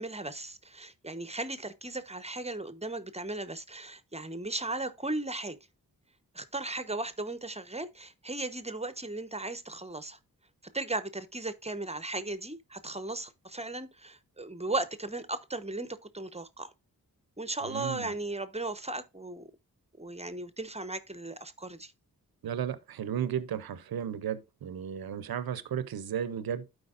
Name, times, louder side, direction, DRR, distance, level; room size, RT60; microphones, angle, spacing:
voice 1, 0.0-5.6 6.3-10.2 10.7-16.7 17.4-19.5 20.0-21.9, right 2 dB, 20° right, 0.9 m, -36 dB
voice 2, 17.6-18.1 22.4-26.7, right 9 dB, 90° right, 0.7 m, -34 dB
12.0 x 4.8 x 2.5 m
cardioid pair, 55°, 35 cm